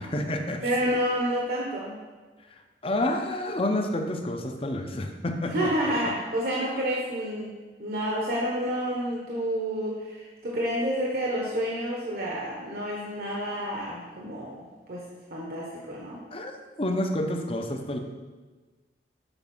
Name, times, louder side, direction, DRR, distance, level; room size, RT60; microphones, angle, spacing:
voice 1, 0.0-0.9 2.5-5.7 16.3-16.5 16.8-18.0, left 1 dB, 30° left, 5 dB, 0.7 m, -29 dB
voice 2, 0.6-2.0 5.5-15.0 15.3-16.2, equal, 55° right, -3 dB, 1.1 m, -29 dB
7.0 x 5.2 x 5.5 m, 1.3 s
head